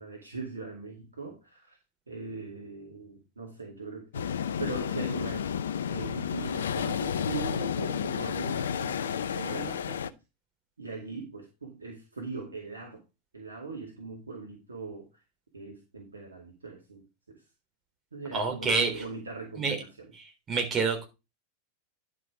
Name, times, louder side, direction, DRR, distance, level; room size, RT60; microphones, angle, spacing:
voice 1, 0.0-1.8 2.1-5.5 5.9-10.1 10.8-13.0 13.3-15.2 15.5-17.4 18.1-20.1, right 4 dB, 75° right, 0 dB, 2.2 m, -40 dB
sound 1, 4.1-10.1, left 8 dB, 65° left, 0.6 m, -31 dB
voice 2, 18.3-19.0 19.6-19.8 20.5-21.0, right 4 dB, 25° right, 2 dB, 3.6 m, -27 dB
11.0 x 5.5 x 4.9 m, 0.27 s
figure-of-eight pair, 90°, 0 cm